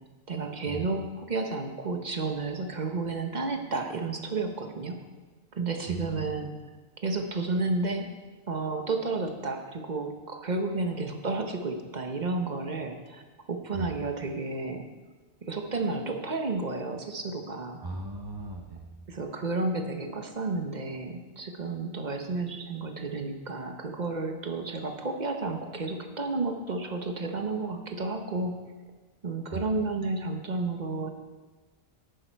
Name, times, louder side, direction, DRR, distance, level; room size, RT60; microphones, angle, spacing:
voice 1, 0.3-5.0 5.5-6.5 7.0-8.1 8.5-13.2 13.5-14.9 15.4-17.8 19.1-28.5 29.2-31.1, right 3 dB, 40° right, 5 dB, 1.1 m, -31 dB
voice 2, 5.9-6.3 13.7-13.9 17.8-19.0 29.5-29.6, right 2 dB, 25° right, 2 dB, 0.7 m, -38 dB
10.5 x 9.8 x 4.6 m, 1.3 s
omnidirectional pair, 1.1 m